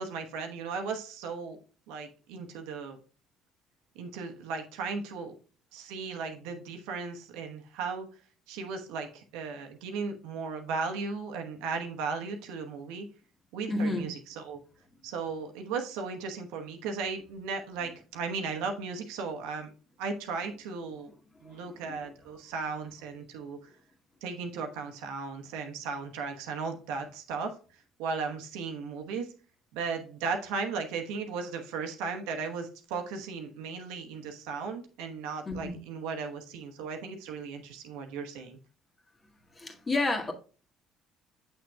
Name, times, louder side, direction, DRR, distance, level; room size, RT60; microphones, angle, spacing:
voice 1, 0.0-1.6 1.9-3.0 3.9-5.4 5.7-8.1 8.5-13.1 13.5-14.6 15.0-19.7 20.0-21.1 21.4-23.7 24.2-27.5 28.0-29.3 29.7-38.6, right 5 dB, 70° right, 1.1 m, -36 dB
voice 2, 13.7-14.1 21.4-21.6 21.9-22.0 35.5-35.8 39.5-40.3, left 2 dB, 25° left, 1.8 m, -30 dB
7.8 x 6.2 x 2.3 m
figure-of-eight pair, 55°, 0 cm